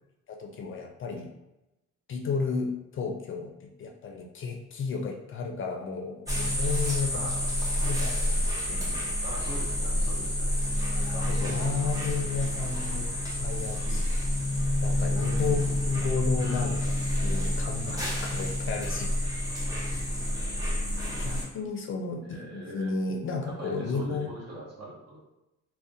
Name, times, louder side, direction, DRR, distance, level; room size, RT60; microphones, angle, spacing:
voice 1, 0.3-1.3 2.1-7.3 7.7-8.3 8.7-9.0 10.9-13.1 13.4-14.1 14.8-16.8 17.2-19.1 21.2-24.3, left 4 dB, 45° left, 2 dB, 0.4 m, -33 dB
sound 1, 6.3-21.4, left 1 dB, 10° right, 0.9 m, -28 dB
voice 2, 7.1-7.5 9.2-10.5 11.1-12.0 12.5-12.6 13.8-14.1 15.4-15.8 17.8-18.0 22.2-22.9 23.4-25.3, right 1 dB, 55° right, -4 dB, 1.1 m, -42 dB
2.3 x 2.1 x 2.6 m, 0.93 s
cardioid pair, 90°, 30 cm